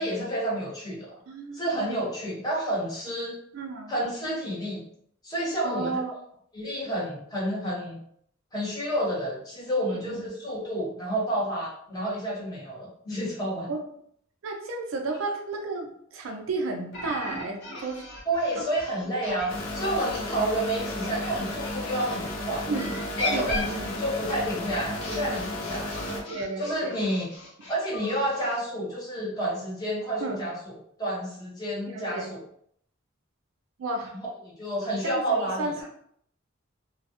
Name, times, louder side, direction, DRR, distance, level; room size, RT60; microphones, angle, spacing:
voice 1, 0.0-1.2 1.5-3.4 3.9-4.8 5.2-6.0 6.5-8.0 8.5-13.7 18.3-22.7 23.2-26.1 26.6-27.3 27.7-32.4 34.4-35.8, right 1 dB, 20° left, -6 dB, 0.9 m, -30 dB
voice 2, 1.3-1.9 3.5-3.9 5.6-6.1 9.8-10.3 12.4-12.5 13.7-13.8 14.4-18.0 18.6-18.7 22.7-22.9 23.3-23.9 26.1-27.0 30.2-30.4 31.9-32.3 33.8-34.1 35.0-35.9, right 3 dB, 75° right, 3 dB, 0.4 m, -33 dB
sound 1, 16.9-22.2 22.7-28.6, left 2 dB, 60° left, 0.8 m, -37 dB
sound 2, 19.5-26.2, left 1 dB, 75° left, 0.5 m, -33 dB
2.2 x 2.0 x 2.8 m, 0.67 s
head